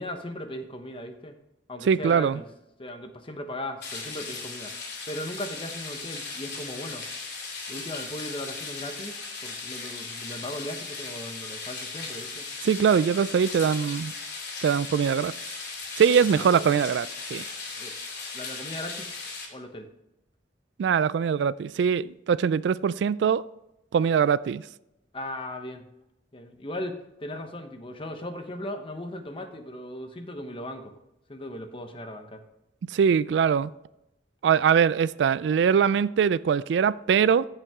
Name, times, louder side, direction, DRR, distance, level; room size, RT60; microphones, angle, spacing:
voice 1, 0.0-1.4 1.7-2.5 2.8-4.7 5.1-7.1 7.7-9.2 9.4-12.5 16.3-16.7 17.7-17.9 18.3-19.2 19.5-19.9 25.1-25.9 26.3-30.9 31.3-32.4, left 1 dB, 30° left, 1.0 m, -37 dB
voice 2, 1.8-2.4 12.6-14.1 14.6-15.3 16.0-17.4 20.8-23.4 23.9-24.7 32.8-33.7 34.4-37.5, right 7 dB, 70° right, 0.3 m, -22 dB
sound 1, 3.8-19.5, left 4 dB, 65° left, 2.9 m, -37 dB
14.5 x 5.6 x 3.6 m
head